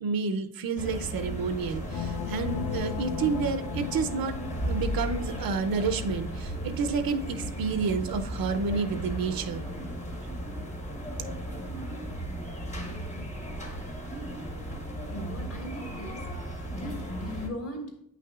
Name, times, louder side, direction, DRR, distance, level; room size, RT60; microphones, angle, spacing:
voice 1, 0.0-4.3 4.6-9.7, right 5 dB, 70° right, 8 dB, 0.6 m, -30 dB
sound 1, 0.8-17.5, equal, 20° left, 1.1 m, -35 dB
sound 2, 1.9-5.9, left 9 dB, 70° left, 0.6 m, -37 dB
voice 2, 12.5-13.4 15.1-18.0, left 1 dB, 40° left, 1 dB, 1.5 m, -40 dB
8.7 x 5.8 x 2.4 m, 0.74 s
wide cardioid pair, 150°, 36 cm